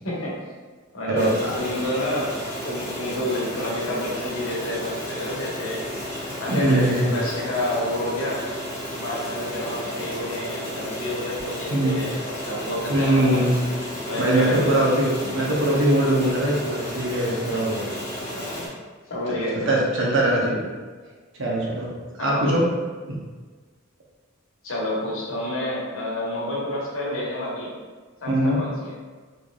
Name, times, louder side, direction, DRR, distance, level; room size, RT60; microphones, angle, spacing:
voice 1, 0.0-0.4 0.9-2.3 2.6-8.4 8.9-13.5 14.1-14.8 18.3-18.7 19.1-20.0 22.2-22.5 24.6-27.7 28.2-28.9, left 1 dB, 75° left, -4 dB, 1.1 m, -29 dB
voice 2, 1.1-1.5 6.5-7.1 11.7-12.0 12.9-13.5 14.2-17.8 19.5-20.6 21.4-21.9 22.2-22.6 28.3-28.6, right 1 dB, 65° right, -3 dB, 0.8 m, -21 dB
sound 1, 1.2-18.7, equal, 10° left, 0.8 m, -33 dB
4.2 x 3.3 x 2.3 m, 1.4 s
head